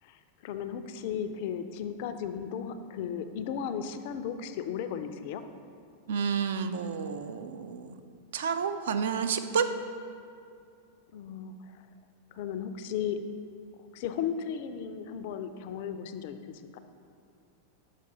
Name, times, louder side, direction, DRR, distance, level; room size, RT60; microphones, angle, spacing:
voice 1, 0.0-5.4 11.1-11.8 12.3-13.2 13.9-16.8, left 8 dB, 50° left, 10 dB, 0.3 m, -35 dB
voice 2, 6.1-7.9 8.3-9.7, right 6 dB, 60° right, 8 dB, 0.3 m, -30 dB
6.5 x 5.0 x 4.0 m, 2.5 s
figure-of-eight pair, 90°, 0 cm